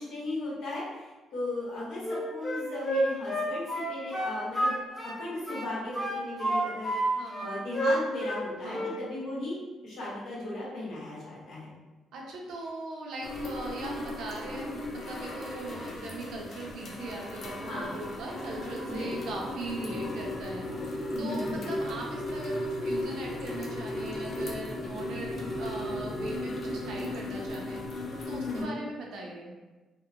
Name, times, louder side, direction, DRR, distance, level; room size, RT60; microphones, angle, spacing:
voice 1, 0.0-4.7 5.0-9.6 9.8-11.7 17.7-17.9 18.9-19.2 19.8-20.0 21.1-21.7 28.5-28.8, left 1 dB, 75° left, -7 dB, 1.0 m, -36 dB
Wind instrument woodwind instrument, 2.0-5.2 5.5-7.0 7.3-8.4 8.7-9.0, right 1 dB, 15° left, 0.9 m, -29 dB
voice 2, 7.2-7.6 8.6-8.9 12.1-20.7 21.2-27.8 28.3-29.5, right 2 dB, 80° right, -1 dB, 0.5 m, -40 dB
sound 1, 13.2-28.6, left 1 dB, 55° left, 0.5 m, -36 dB
2.8 x 2.1 x 2.4 m, 1.2 s
cardioid pair, 90°, 0 cm